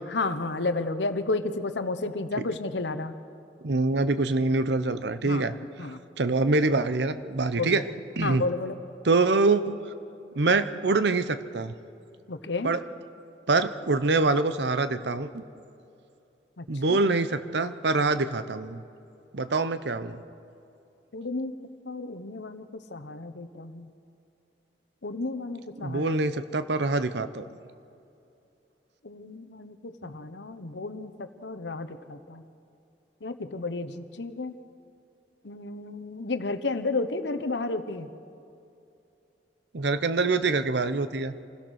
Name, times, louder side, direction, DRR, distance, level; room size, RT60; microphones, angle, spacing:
voice 1, 0.1-3.1 5.2-6.0 7.6-7.8 8.2-8.8 12.3-12.7 16.6-17.0 21.1-21.5 21.9-23.9 25.0-26.2 29.0-32.4 33.2-34.5 35.4-38.1, left 3 dB, 80° left, 10 dB, 1.0 m, -32 dB
voice 2, 3.6-5.5 6.2-7.8 8.2-8.4 9.0-9.8 10.4-11.7 12.6-12.8 13.5-15.4 16.7-18.8 19.3-20.2 25.8-27.4 30.0-30.1 39.7-41.3, right 3 dB, 75° right, 12 dB, 0.8 m, -25 dB
25.5 x 16.5 x 6.4 m, 2.7 s
head